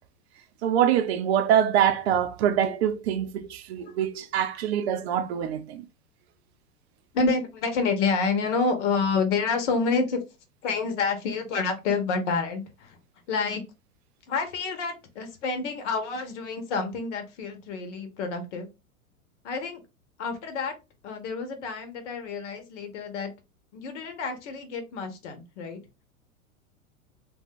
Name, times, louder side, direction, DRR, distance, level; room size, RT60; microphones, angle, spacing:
voice 1, 0.6-5.8, right 9 dB, 50° right, 0.6 m, -24 dB
voice 2, 7.1-10.2 10.6-13.0 13.3-13.6 14.3-18.7 19.4-19.8 20.2-20.7 21.0-23.3 23.7-25.8, left 4 dB, 55° left, 1.0 m, -28 dB
2.6 x 2.3 x 3.6 m
hypercardioid pair, 100°, 42 cm